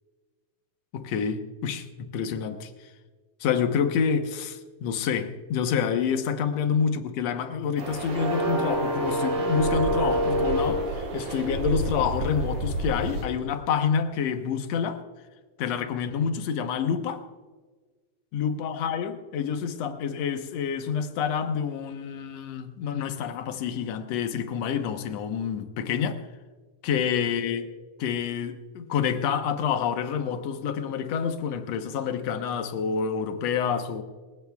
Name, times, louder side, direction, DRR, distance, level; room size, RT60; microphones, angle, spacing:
voice 1, 0.9-2.7 3.4-15.0 15.6-17.2 18.3-26.2 26.8-27.7 28.0-34.0, left 7 dB, 65° left, 1.7 m, -28 dB
sound 1, 7.8-13.2, right 1 dB, 75° right, 5.4 m, -27 dB
26.5 x 15.5 x 2.4 m
omnidirectional pair, 4.2 m